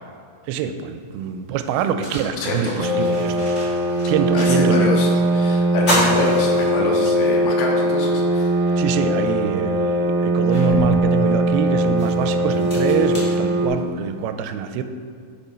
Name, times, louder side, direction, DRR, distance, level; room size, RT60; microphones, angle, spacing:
voice 1, 0.5-3.6 4.1-5.0 8.8-14.8, right 7 dB, 90° right, 9 dB, 2.5 m, -24 dB
sound 1, 0.9-1.0 1.6-4.9 5.2-5.3 5.7-7.2 7.7-7.8 9.2-9.3 9.9-14.1, equal, 25° left, 1.8 m, -29 dB
voice 2, 2.4-2.9 4.3-8.8, left 3 dB, 85° left, -1 dB, 3.0 m, -26 dB
sound 2, 2.8-13.7, right 1 dB, 70° right, 1.5 m, -20 dB
8.5 x 5.4 x 5.1 m, 2.2 s
omnidirectional pair, 4.3 m